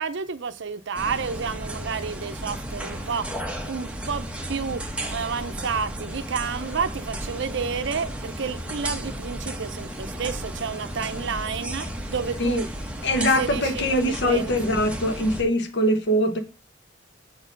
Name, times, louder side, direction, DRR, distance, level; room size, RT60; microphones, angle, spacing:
voice 1, 0.0-3.3 3.7-4.8 5.1-12.7 13.1-13.9 14.2-14.5, right 5 dB, 65° right, 0.6 m, -30 dB
sound 1, 1.0-15.4, right 1 dB, 5° right, 1.0 m, -34 dB
voice 2, 13.0-16.4, equal, 60° left, 1.0 m, -22 dB
6.8 x 4.4 x 5.2 m
head